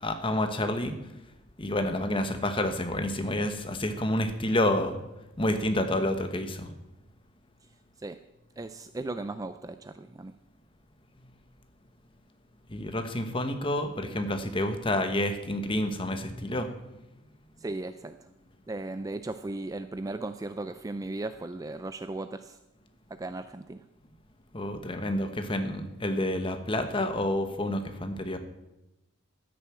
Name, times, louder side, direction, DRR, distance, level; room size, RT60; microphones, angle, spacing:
voice 1, 0.0-0.9 1.6-5.0 5.4-6.7 12.7-16.7 24.5-28.4, left 1 dB, 25° left, 7 dB, 1.0 m, -29 dB
voice 2, 8.6-10.3 17.6-18.3 18.7-22.6 23.1-23.8, right 2 dB, 15° right, 10 dB, 0.3 m, -36 dB
13.5 x 6.9 x 7.5 m, 0.95 s
head